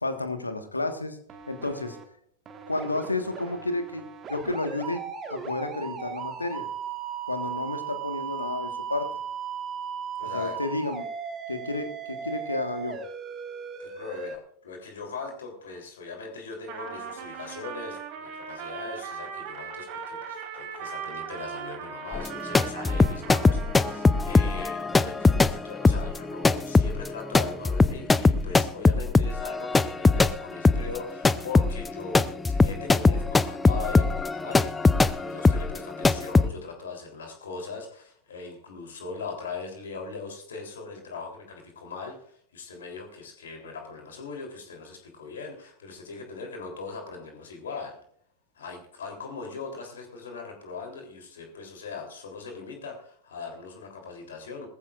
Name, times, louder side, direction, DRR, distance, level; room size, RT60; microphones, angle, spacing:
voice 1, 0.0-1.2 1.5-2.0 2.7-5.0 5.3-6.6 7.3-9.1 10.2-11.0 11.5-13.0, left 2 dB, 80° left, 8 dB, 1.5 m, -31 dB
sound 1, 1.3-2.0 2.5-14.4, right 7 dB, 25° right, 1.7 m, -37 dB
voice 2, 10.2-10.6 13.8-48.0 48.6-54.7, left 4 dB, 65° left, 3 dB, 3.5 m, -40 dB
Trumpet, 16.7-24.5, right 7 dB, 40° right, 3.6 m, -39 dB
sound 2, 22.1-30.4 30.6-36.5, left 3 dB, 10° left, 0.5 m, -21 dB
19.5 x 14.5 x 2.5 m, 0.65 s
figure-of-eight pair, 90°, 0 cm